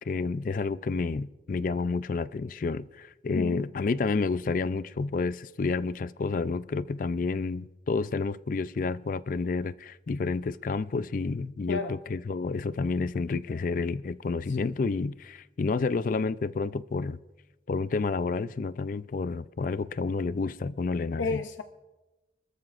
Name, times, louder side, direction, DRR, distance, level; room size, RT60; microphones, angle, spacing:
voice 1, 0.0-17.2 17.7-21.4, left 4 dB, 45° left, 0.4 m, -30 dB
voice 2, 21.2-21.6, left 4 dB, 90° left, 0.6 m, -31 dB
29.5 x 13.5 x 2.5 m
head